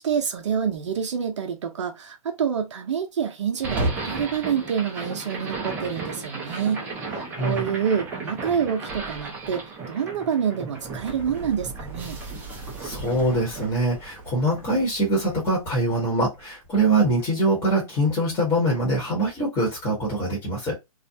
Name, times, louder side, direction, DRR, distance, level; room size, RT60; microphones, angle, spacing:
voice 1, 0.0-6.9 7.1-12.2, right 7 dB, 50° right, 0.7 m, -27 dB
sound 1, 3.6-15.8, right 3 dB, 10° right, 0.4 m, -34 dB
voice 2, 12.8-20.8, right 1 dB, 15° left, 1.0 m, -23 dB
2.5 x 2.1 x 2.7 m
hypercardioid pair, 145°, 19 cm